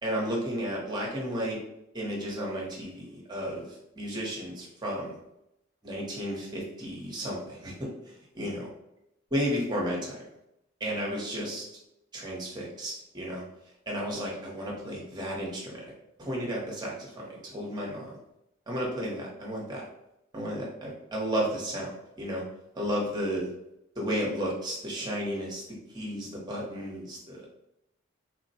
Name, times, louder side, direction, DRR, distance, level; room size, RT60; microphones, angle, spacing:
voice 1, 0.0-1.6 1.9-5.2 5.8-8.6 9.3-10.3 10.8-11.6 12.1-13.4 13.9-15.9 16.2-18.2 18.7-19.8 20.3-22.4 22.7-23.5 24.0-25.6 25.9-27.5, equal, 20° right, -3 dB, 0.8 m, -33 dB
3.2 x 2.1 x 4.1 m, 0.84 s
head